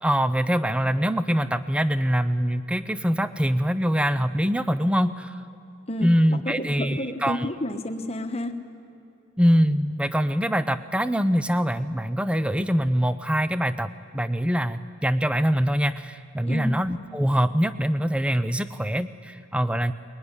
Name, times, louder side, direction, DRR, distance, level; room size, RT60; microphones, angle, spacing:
voice 1, 0.0-5.3 6.0-7.5 9.4-19.9, equal, 5° right, 13 dB, 0.5 m, -24 dB
voice 2, 5.9-8.6 16.4-16.8, left 1 dB, 30° left, 7 dB, 1.1 m, -30 dB
23.0 x 21.0 x 9.9 m, 2.7 s
head